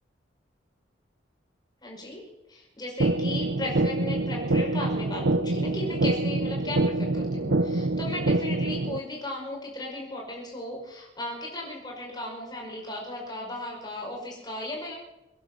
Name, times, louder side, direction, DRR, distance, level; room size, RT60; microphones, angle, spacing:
voice 1, 1.8-14.9, left 1 dB, 20° left, -2 dB, 5.3 m, -36 dB
sound 1, 3.0-9.0, right 2 dB, 75° right, 0.8 m, -26 dB
23.0 x 10.5 x 5.9 m, 0.99 s
head